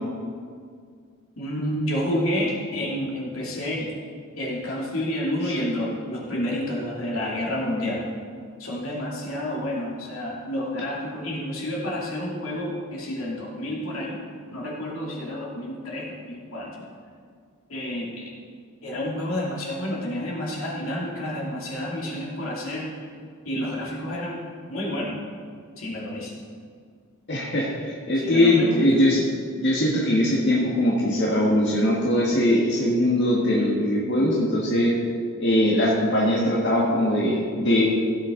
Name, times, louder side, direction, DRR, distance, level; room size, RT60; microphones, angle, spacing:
voice 1, 1.4-3.9 4.4-8.0 8.6-14.2 14.5-16.8 17.7-18.3 18.8-22.9 23.4-24.4 24.7-25.2 25.8-26.3 28.2-28.9, left 1 dB, 85° left, -3 dB, 2.7 m, -29 dB
voice 2, 27.3-29.3 29.6-34.9 35.4-37.8, left 1 dB, 60° left, -5 dB, 1.7 m, -21 dB
16.0 x 8.1 x 3.9 m, 2.1 s
head